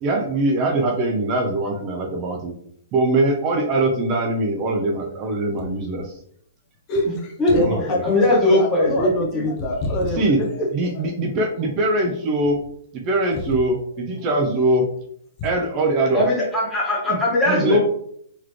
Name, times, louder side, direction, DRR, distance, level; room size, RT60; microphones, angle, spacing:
voice 1, 0.0-2.5 2.9-6.2 7.6-8.1 10.2-10.4 10.7-12.6 12.9-14.9 15.4-16.2 17.1-17.2 17.5-17.8, right 2 dB, 30° right, 1 dB, 0.6 m, -22 dB
voice 2, 6.9-11.1 11.8-11.9, left 1 dB, 35° left, 0 dB, 0.9 m, -25 dB
voice 3, 8.0-9.4 16.1-17.8, left 1 dB, 10° left, -5 dB, 1.5 m, -19 dB
4.0 x 3.1 x 3.1 m, 0.67 s
hypercardioid pair, 150°, 0 cm